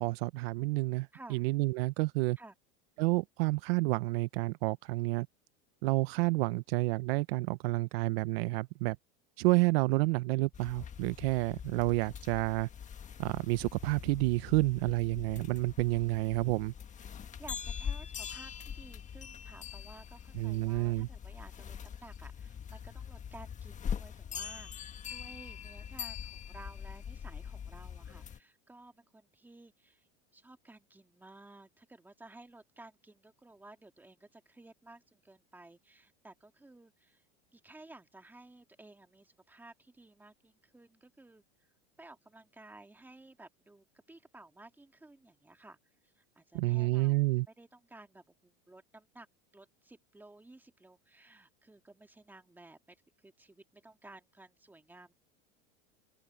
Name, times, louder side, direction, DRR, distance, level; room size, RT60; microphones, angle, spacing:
voice 1, 0.0-2.4 3.0-5.3 5.8-9.0 9.4-12.7 13.2-16.7 20.3-21.1 46.5-47.5, right 22 dB, 70° right, 0.6 m, -29 dB
voice 2, 1.1-1.4 2.4-2.6 17.4-30.1 30.3-37.2 37.5-41.7 42.0-45.8 46.0-47.2 47.5-49.3 49.5-55.1, right 2 dB, 5° right, 2.0 m, -55 dB
sound 1, 10.5-28.4, left 7 dB, 25° left, 1.5 m, -43 dB
open air
supercardioid pair, 135°, 31 cm